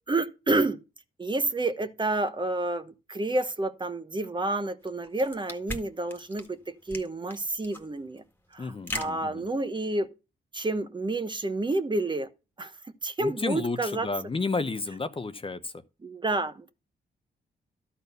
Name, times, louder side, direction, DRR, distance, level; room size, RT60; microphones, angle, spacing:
voice 1, 0.1-0.8 1.2-8.2 8.5-10.1 10.5-12.3 12.6-12.7 13.0-14.1 16.0-16.7, right 2 dB, 25° right, 1.1 m, -29 dB
sound 1, 4.8-10.0, left 1 dB, 10° left, 1.8 m, -40 dB
voice 2, 8.6-9.5 13.2-15.8, left 3 dB, 30° left, 0.8 m, -32 dB
12.0 x 4.2 x 6.8 m
cardioid pair, 70°, 18 cm